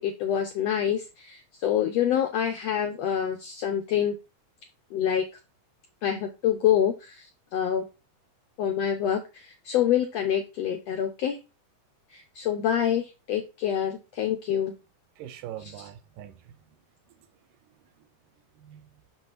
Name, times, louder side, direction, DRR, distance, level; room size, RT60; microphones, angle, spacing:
voice 1, 0.0-4.1 4.9-5.2 6.0-7.3 7.5-7.8 8.6-11.4 12.1-14.7, left 9 dB, 80° left, 1.5 m, -26 dB
voice 2, 15.2-16.5 17.2-17.3 17.6-18.1 18.6-19.0, right 11 dB, 80° right, 2.4 m, -43 dB
6.3 x 6.0 x 4.0 m
omnidirectional pair, 3.8 m